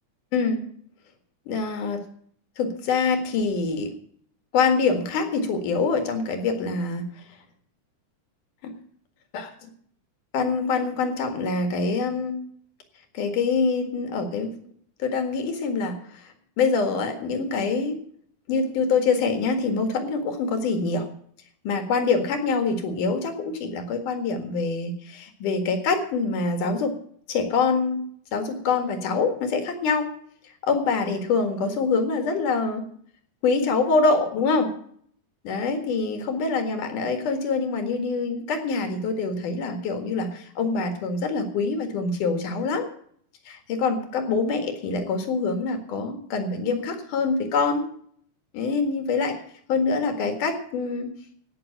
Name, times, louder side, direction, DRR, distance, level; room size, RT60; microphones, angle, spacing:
voice 1, 0.3-0.6 1.5-2.1 2.6-3.9 4.5-7.1 8.6-8.7 9.3-9.7 10.3-12.3 13.1-14.6 15.0-18.0 18.5-21.1 21.6-27.0 27.3-28.0 28.3-30.1 30.6-32.9 33.4-34.7 35.4-42.9 43.5-47.9 48.5-49.4 49.7-51.1, left 4 dB, 80° left, 6 dB, 3.4 m, -25 dB
16.5 x 6.4 x 8.8 m, 0.62 s
omnidirectional pair, 3.6 m